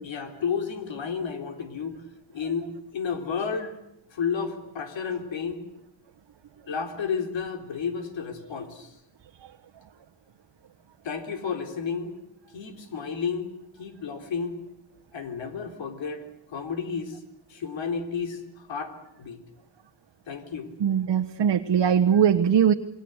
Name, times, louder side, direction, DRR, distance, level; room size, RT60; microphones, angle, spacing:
voice 1, 0.0-2.0 2.3-3.8 4.1-5.6 6.7-8.9 11.0-12.1 12.5-13.5 13.8-14.6 15.1-17.2 17.5-19.4 20.3-20.7, left 6 dB, 75° left, 6 dB, 3.9 m, -32 dB
voice 2, 20.8-22.7, right 8 dB, 60° right, 5 dB, 1.3 m, -21 dB
28.0 x 22.5 x 8.1 m, 0.82 s
wide cardioid pair, 120°, 46 cm